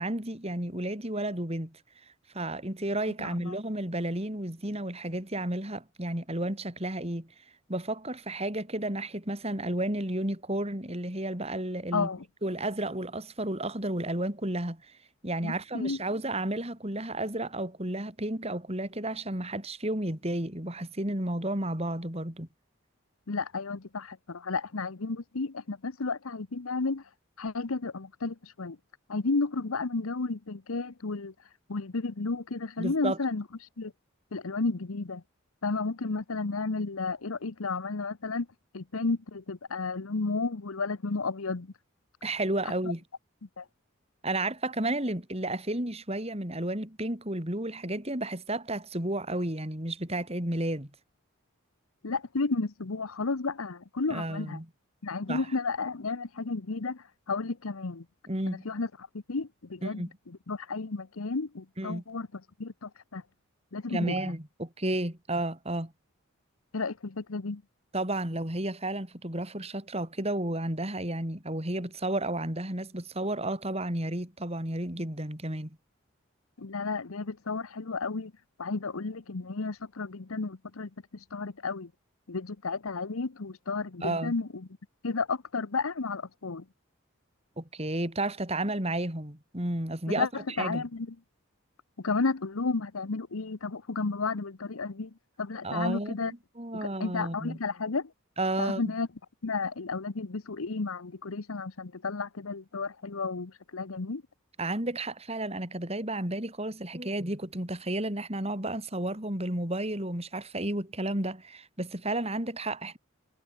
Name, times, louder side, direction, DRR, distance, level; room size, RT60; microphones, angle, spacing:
voice 1, 0.0-1.8 2.3-7.3 7.7-12.1 12.4-14.9 15.2-22.5 32.8-33.2 42.2-43.0 44.2-50.9 54.1-54.7 55.3-55.4 58.3-58.7 59.8-60.1 61.8-62.0 63.9-65.9 67.9-75.8 84.0-84.3 87.6-90.3 90.6-90.8 95.6-96.1 96.6-97.6 98.4-98.8 104.6-113.0, right 1 dB, 30° right, 4.0 m, -32 dB
voice 2, 3.2-3.6 11.9-12.2 15.4-16.0 23.3-27.0 27.4-28.8 29.1-31.3 31.7-33.4 33.8-33.9 34.3-35.2 35.6-38.5 38.7-41.7 42.6-42.9 43.6-43.7 52.0-54.6 55.0-58.1 58.5-58.9 59.1-63.2 63.7-64.1 66.7-67.6 76.6-78.3 78.6-81.9 82.3-84.7 85.0-86.6 90.2-91.1 92.0-96.3 96.7-98.1 98.6-99.1 99.4-104.2, left 4 dB, 90° left, 1.0 m, -32 dB
head